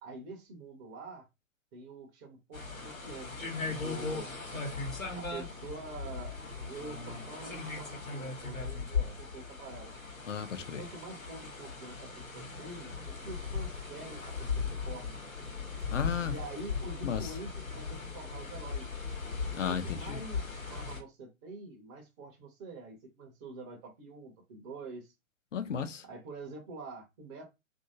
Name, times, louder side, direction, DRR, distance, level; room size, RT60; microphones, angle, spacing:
voice 1, 0.0-1.3 1.7-4.3 5.1-6.3 6.6-10.0 10.6-15.2 16.2-19.0 19.6-25.1 26.0-27.4, right 3 dB, 20° right, 0.6 m, -46 dB
sound 1, 2.5-21.0, left 4 dB, 85° left, 1.1 m, -38 dB
voice 2, 10.2-10.8 15.9-16.4 17.0-17.3 19.5-20.2 25.5-26.0, left 7 dB, 65° left, 0.7 m, -34 dB
2.8 x 2.6 x 2.7 m
figure-of-eight pair, 110°, 40 cm